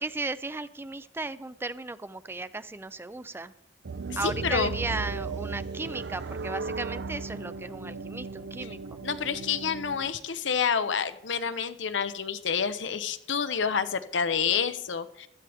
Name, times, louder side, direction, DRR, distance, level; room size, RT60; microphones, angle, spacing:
voice 1, 0.0-3.5 4.2-9.0, right 3 dB, 15° right, 14 dB, 0.4 m, -35 dB
sound 1, 3.8-10.1, right 4 dB, 65° right, 0.6 m, -36 dB
voice 2, 4.2-4.7 9.0-15.3, left 6 dB, 85° left, 11 dB, 0.8 m, -28 dB
15.5 x 12.5 x 3.5 m, 0.76 s
head